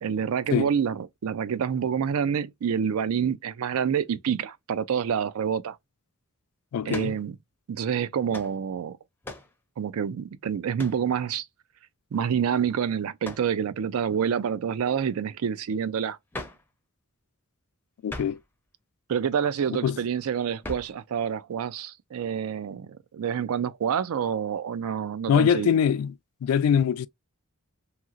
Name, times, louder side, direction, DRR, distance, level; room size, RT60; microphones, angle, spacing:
voice 1, 0.0-5.8 6.9-7.4 7.7-9.0 9.8-11.5 12.1-16.2 19.1-25.8, right 7 dB, 75° right, 0.4 m, -27 dB
voice 2, 6.7-7.1 18.0-18.4 19.8-20.0 25.3-26.1 26.4-27.1, left 7 dB, 85° left, 0.3 m, -23 dB
sound 1, 6.9-7.2 8.3-8.6 9.2-9.6 10.8-11.1 13.2-13.5 16.3-16.7 18.1-18.5 20.6-21.0, left 1 dB, 10° left, 0.5 m, -39 dB
2.9 x 2.8 x 2.4 m
head